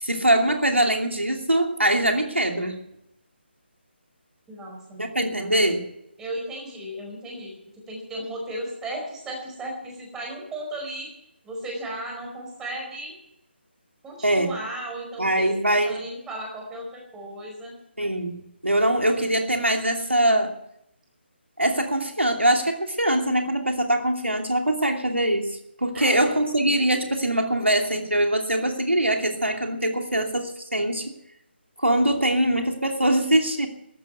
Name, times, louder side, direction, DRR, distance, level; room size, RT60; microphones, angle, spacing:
voice 1, 0.0-2.8 5.0-5.9 14.2-14.5 15.2-16.0 18.0-20.5 21.6-31.0 31.8-33.7, right 1 dB, 90° right, 3 dB, 2.8 m, -23 dB
voice 2, 4.5-5.6 6.2-7.5 7.9-11.1 11.4-13.1 14.0-17.7 25.9-26.2, right 1 dB, 10° right, -1 dB, 4.8 m, -35 dB
14.0 x 12.0 x 7.8 m, 0.77 s
figure-of-eight pair, 150°, 6 cm